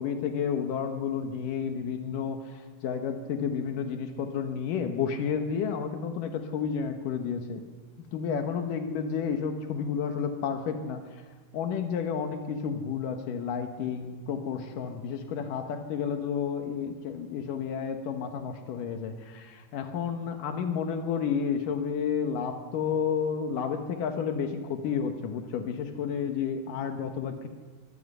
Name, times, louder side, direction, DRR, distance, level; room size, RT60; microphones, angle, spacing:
voice 1, 0.0-7.6 8.1-11.0 11.5-27.5, left 7 dB, 90° left, 5 dB, 2.9 m, -31 dB
24.0 x 15.5 x 8.0 m, 1.5 s
omnidirectional pair, 3.7 m